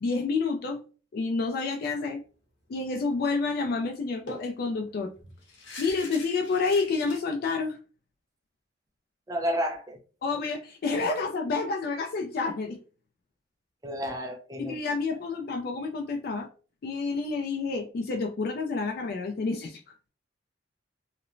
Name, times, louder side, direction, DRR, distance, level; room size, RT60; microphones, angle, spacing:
voice 1, 0.0-0.8 1.1-2.2 2.7-5.1 5.8-7.8 10.2-12.8 14.6-16.5 16.8-19.9, left 4 dB, 55° left, 0.4 m, -29 dB
sound 1, 3.1-3.3 3.6-3.7 4.3-7.2, left 2 dB, 80° left, 0.7 m, -43 dB
voice 2, 9.3-10.0 13.8-14.8, equal, 20° right, 0.4 m, -31 dB
2.9 x 2.1 x 2.5 m
head